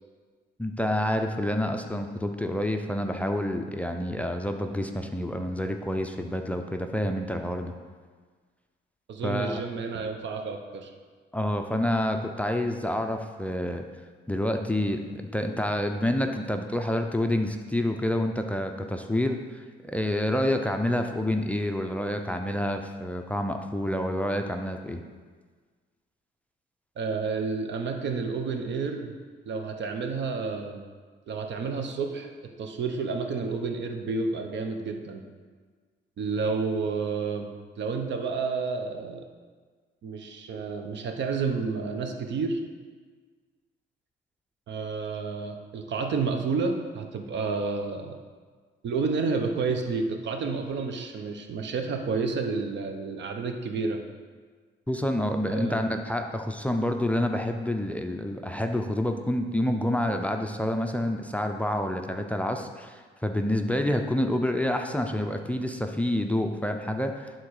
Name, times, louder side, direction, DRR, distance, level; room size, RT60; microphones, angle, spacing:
voice 1, 0.6-7.7 9.2-9.6 11.3-13.8 14.3-25.0 54.9-67.4, left 1 dB, 5° left, 4 dB, 0.5 m, -28 dB
voice 2, 9.1-10.9 27.0-29.1 29.5-30.8 31.3-32.3 32.6-35.2 36.2-37.5 37.8-39.2 40.0-42.6 44.7-48.2 48.8-54.0 55.5-55.8, right 4 dB, 65° right, 5 dB, 0.9 m, -30 dB
11.0 x 3.8 x 4.8 m, 1.5 s
cardioid pair, 90°, 20 cm